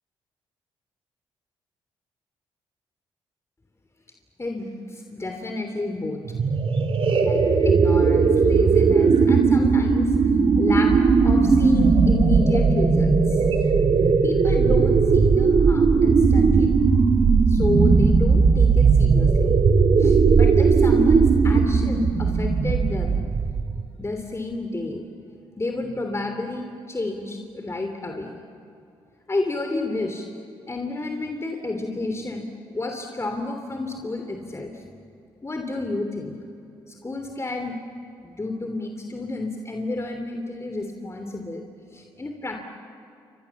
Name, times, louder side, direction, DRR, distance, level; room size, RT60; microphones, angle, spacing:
voice 1, 4.4-6.2 7.2-10.1 10.6-10.9 11.2-13.4 14.2-16.8 17.5-19.6 20.0-23.2 24.0-25.0 25.6-28.3 29.3-30.2 30.7-32.5 32.7-34.7 35.4-36.3 37.0-37.8 38.2-41.6 41.9-42.6, left 2 dB, 25° left, 4 dB, 3.1 m, -30 dB
sound 1, 6.2-23.8, right 5 dB, 60° right, 2.9 m, -18 dB
29.0 x 25.5 x 7.3 m, 2.7 s
supercardioid pair, 55°, 11 cm